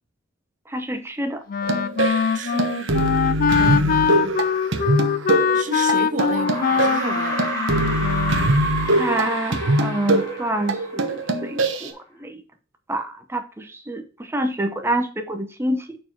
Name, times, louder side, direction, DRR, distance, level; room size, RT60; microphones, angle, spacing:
voice 1, 0.7-1.4 8.9-12.4 12.9-16.0, right 1 dB, 15° right, 0.8 m, -27 dB
Wind instrument woodwind instrument, 1.5-8.6, left 6 dB, 45° left, 0.3 m, -23 dB
sound 1, 1.6-11.9, right 1 dB, 70° right, 1.0 m, -23 dB
voice 2, 2.3-3.1 3.6-4.4 5.5-7.5, right 3 dB, 40° right, 0.8 m, -32 dB
sound 2, 5.5-5.6 6.3-11.5, equal, 15° left, 1.7 m, -30 dB
6.7 x 4.6 x 4.6 m
head